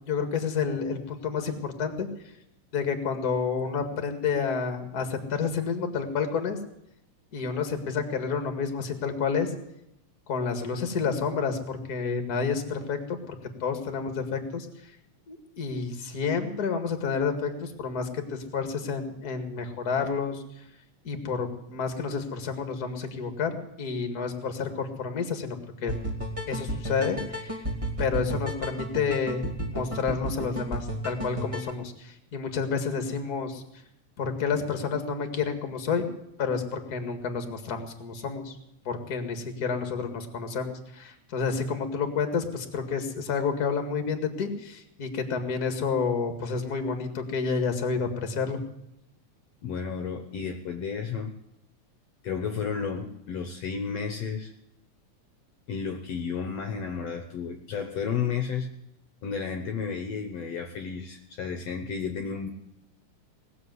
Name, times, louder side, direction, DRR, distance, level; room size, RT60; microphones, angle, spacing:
voice 1, 0.1-2.1 2.7-6.6 7.3-9.5 10.3-13.2 13.6-14.7 15.3-20.4 21.0-25.9 26.5-27.5 28.0-29.4 29.7-33.6 34.2-36.1 36.4-38.5 38.9-48.6, left 5 dB, 35° left, 6 dB, 2.0 m, -29 dB
sound 1, 25.9-31.7, right 1 dB, 10° right, 1.8 m, -33 dB
voice 2, 49.6-51.3 52.2-54.5 55.7-58.7 59.2-62.5, left 6 dB, 65° left, 5 dB, 2.0 m, -32 dB
19.0 x 7.7 x 9.4 m, 0.82 s
omnidirectional pair, 3.5 m